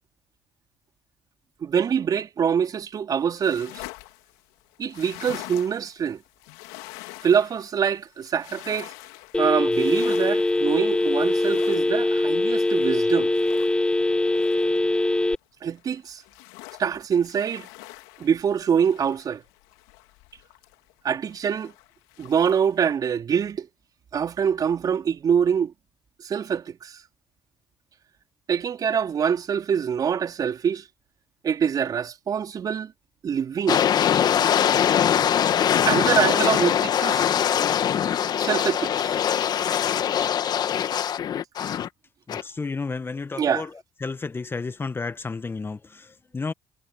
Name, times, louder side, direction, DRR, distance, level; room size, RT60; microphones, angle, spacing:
voice 1, 1.6-3.8 4.8-6.2 7.2-8.9 9.4-13.3 15.6-16.2 16.8-17.7 18.2-19.4 21.0-21.7 22.2-23.7 24.1-25.7 26.2-27.0 28.5-30.8 31.4-32.9 33.2-33.8 35.9-37.3 38.4-39.2 43.4-43.7, right 7 dB, 50° right, 4.3 m, -24 dB
sound 1, 3.1-15.3 15.7-21.0 21.3-22.8, left 23 dB, 85° left, 3.3 m, -45 dB
Telephone, 9.3-15.4, left 2 dB, 10° left, 2.2 m, -22 dB
sound 2, 33.7-41.9 42.3-42.4, left 9 dB, 55° left, 1.7 m, -22 dB
voice 2, 42.3-43.7 44.0-46.5, left 4 dB, 30° left, 1.5 m, -32 dB
hypercardioid pair, 60°, 8 cm